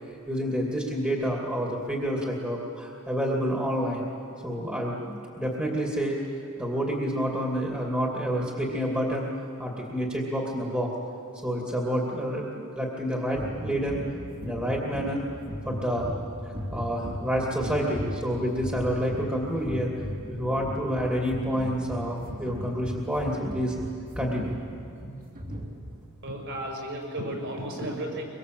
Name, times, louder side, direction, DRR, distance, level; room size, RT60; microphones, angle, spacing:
voice 1, 0.3-4.1 4.4-6.2 6.6-9.3 9.6-10.9 11.4-14.0 14.4-15.2 15.7-16.2 16.7-19.9 20.3-23.8 24.2-24.6, equal, 10° right, -2 dB, 2.6 m, -28 dB
sound 1, 13.3-26.0, equal, 40° right, 3.2 m, -37 dB
voice 2, 26.2-28.2, right 1 dB, 55° right, 1 dB, 5.9 m, -33 dB
24.0 x 24.0 x 7.7 m, 2.5 s
head